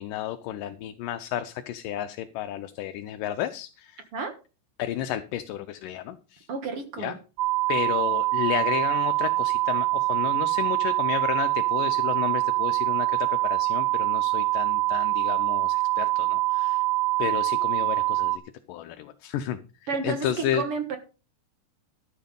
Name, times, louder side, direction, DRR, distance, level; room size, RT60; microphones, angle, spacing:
voice 1, 0.0-4.0 4.8-6.5 7.0-7.1 7.7-16.8 17.2-18.4 18.7-19.6 20.0-20.6, left 11 dB, 80° left, 8 dB, 2.4 m, -32 dB
voice 2, 6.5-7.2 19.9-21.0, right 5 dB, 55° right, 7 dB, 1.9 m, -31 dB
sound 1, 7.4-18.4, right 20 dB, 75° right, 2.1 m, -24 dB
13.0 x 7.4 x 5.4 m, 0.33 s
omnidirectional pair, 3.9 m